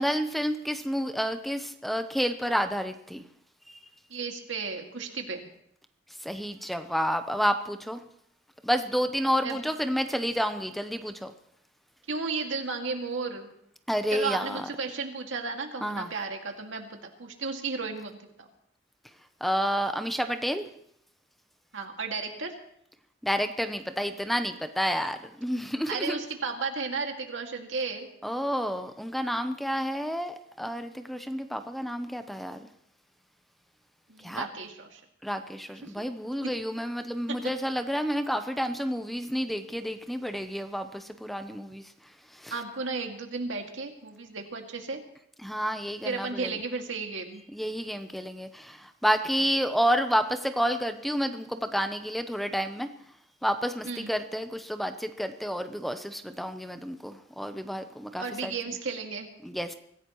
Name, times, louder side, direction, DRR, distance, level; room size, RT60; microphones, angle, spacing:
voice 1, 0.0-3.2 6.2-8.0 8.6-11.3 13.9-14.6 15.8-16.1 19.4-20.7 23.2-26.2 28.2-32.6 34.2-34.5 35.2-41.8 42.4-42.5 45.4-46.5 47.5-52.9 53.4-58.5 59.4-59.7, equal, ahead, 8 dB, 0.7 m, -30 dB
voice 2, 4.1-5.5 9.4-9.6 12.1-13.5 14.1-18.5 21.7-22.5 25.9-28.1 34.1-35.0 35.8-36.0 36.4-36.6 37.3-37.5 42.5-45.0 46.0-47.4 53.8-54.1 58.1-59.3, right 4 dB, 85° right, 3 dB, 2.2 m, -34 dB
24.0 x 15.5 x 3.1 m, 0.72 s
head